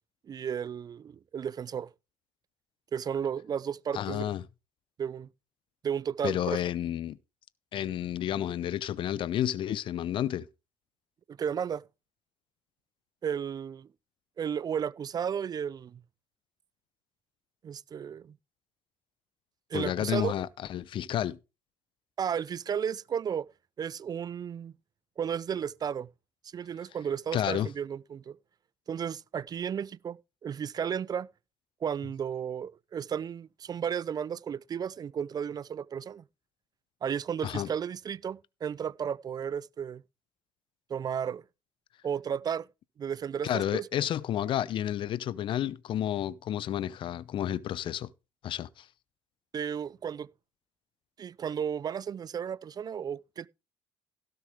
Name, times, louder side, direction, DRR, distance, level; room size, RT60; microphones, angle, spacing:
voice 1, 0.3-1.9 2.9-4.3 5.0-5.3 5.8-6.6 11.3-11.8 13.2-13.9 14.4-16.0 17.6-18.3 19.7-20.3 22.2-23.5 23.8-24.7 25.2-26.1 26.5-28.4 28.9-31.3 31.8-36.2 37.0-40.0 40.9-41.4 42.0-42.7 43.0-43.9 49.5-50.3 51.2-53.5, right 8 dB, 35° right, 0.5 m, -33 dB
voice 2, 3.9-4.4 6.2-7.2 7.7-10.5 19.7-21.4 27.3-27.7 37.4-37.7 43.4-48.1 48.4-48.8, left 11 dB, 50° left, 0.7 m, -31 dB
16.5 x 6.6 x 3.6 m
hypercardioid pair, 60°, 11 cm